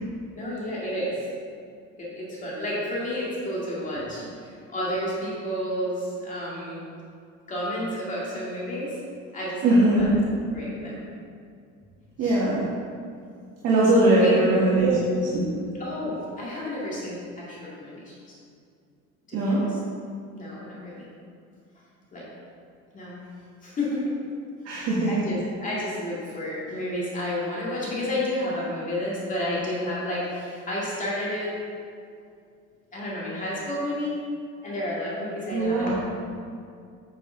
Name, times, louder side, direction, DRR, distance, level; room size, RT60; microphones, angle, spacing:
voice 1, 0.3-1.3 2.0-6.9 7.5-9.0 9.3-10.1 10.5-11.0 12.2-12.4 14.2-14.4 15.8-18.4 19.3-19.5 20.3-21.1 22.1-22.3 22.9-23.2 23.6-24.1 24.7-31.5 32.9-34.2 34.6-36.0, left 1 dB, 25° left, -7 dB, 2.1 m, -31 dB
voice 2, 9.6-10.2 12.2-12.6 13.6-15.6 19.3-19.6 24.6-25.1 35.5-35.9, right 1 dB, 55° right, -7 dB, 1.6 m, -20 dB
9.0 x 7.0 x 3.8 m, 2.3 s
cardioid pair, 160°, 30 cm